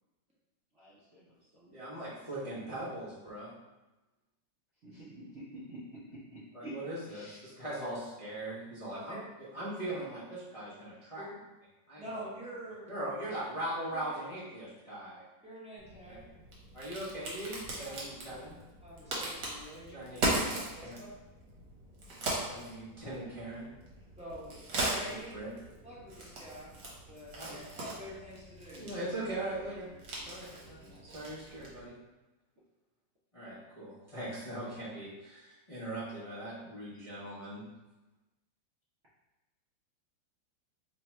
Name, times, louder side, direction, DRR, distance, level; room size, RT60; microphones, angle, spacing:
voice 1, 0.7-1.8 4.8-6.7 7.1-7.5, right 1 dB, 55° right, -9 dB, 0.8 m, -48 dB
voice 2, 1.7-3.5 6.5-9.2 9.5-11.2 11.9-12.3 12.9-15.2 16.1-16.2 16.7-18.6 19.9-21.0 22.5-23.7 25.1-25.5 27.4-27.6 28.7-29.9 30.3-32.0 33.3-37.7, right 1 dB, 40° left, -12 dB, 0.4 m, -40 dB
voice 3, 12.0-12.9 13.9-14.1 15.4-16.3 17.8-18.0 18.8-20.0 20.7-21.1 24.2-25.3 25.8-28.9, equal, 5° right, -9 dB, 0.7 m, -46 dB
Crack, 15.8-31.9, right 1 dB, 70° right, 1.5 m, -39 dB
3.3 x 2.2 x 4.1 m, 1.1 s
omnidirectional pair, 2.0 m